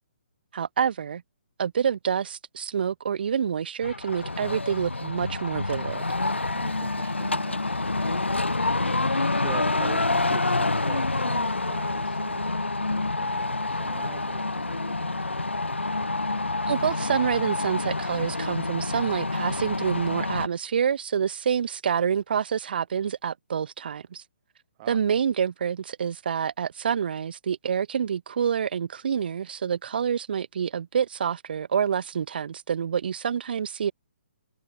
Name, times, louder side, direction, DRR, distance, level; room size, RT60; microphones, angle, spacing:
voice 1, 0.5-1.2 1.6-6.0 16.7-24.2 24.9-33.9, right 7 dB, 55° right, 8.0 m, -27 dB
sound 1, 3.8-20.5, left 2 dB, 85° left, 3.4 m, -27 dB
voice 2, 6.5-12.5 13.1-15.4 24.8-25.0, right 17 dB, 35° right, 5.2 m, -44 dB
figure-of-eight pair, 135°, 6 cm